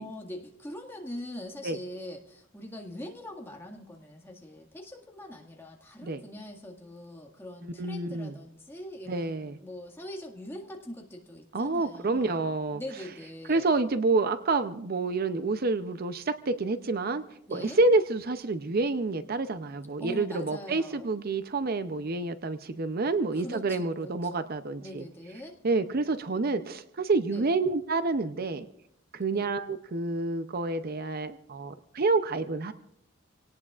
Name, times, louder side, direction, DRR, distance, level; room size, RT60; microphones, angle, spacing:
voice 1, 0.0-12.4 12.7-13.7 17.5-17.8 20.0-21.1 23.3-24.5 24.8-25.6 27.3-27.5 29.3-29.5, left 1 dB, 10° left, 0 dB, 1.9 m, -42 dB
voice 2, 7.8-8.3 9.1-9.6 11.5-12.8 13.5-17.2 17.5-25.0 25.6-28.7 29.1-32.7, right 3 dB, 45° right, 10 dB, 0.6 m, -28 dB
27.0 x 18.0 x 2.4 m, 0.74 s
head